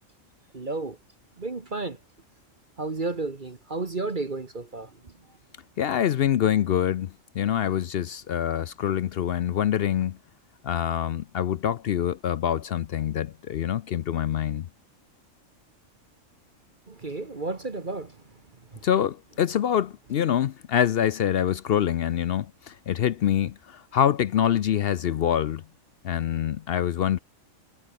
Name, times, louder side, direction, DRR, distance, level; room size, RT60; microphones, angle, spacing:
voice 1, 0.5-1.0 1.4-2.0 2.8-5.1 16.9-18.2 18.7-18.8, right 3 dB, 40° right, 1.7 m, -32 dB
voice 2, 5.8-10.2 10.6-14.7 18.8-25.6 26.0-27.2, left 10 dB, 60° left, 0.7 m, -25 dB
omnidirectional pair, 1.4 m